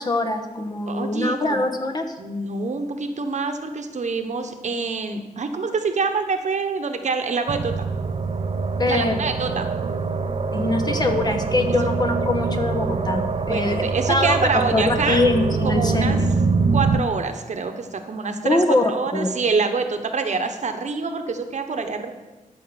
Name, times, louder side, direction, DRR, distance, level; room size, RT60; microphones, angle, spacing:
voice 1, 0.0-2.1 8.8-9.2 10.5-14.4 14.7-16.3 18.4-19.3, left 2 dB, 30° left, 6 dB, 1.2 m, -23 dB
voice 2, 0.9-1.6 2.2-7.8 8.9-9.7 13.5-15.2 15.6-16.2 16.7-18.6 18.9-22.1, right 4 dB, 55° right, 6 dB, 1.1 m, -26 dB
sound 1, 7.5-17.0, right 4 dB, 40° right, 0.7 m, -24 dB
13.0 x 5.3 x 7.1 m, 1.1 s
wide cardioid pair, 105°, 14 cm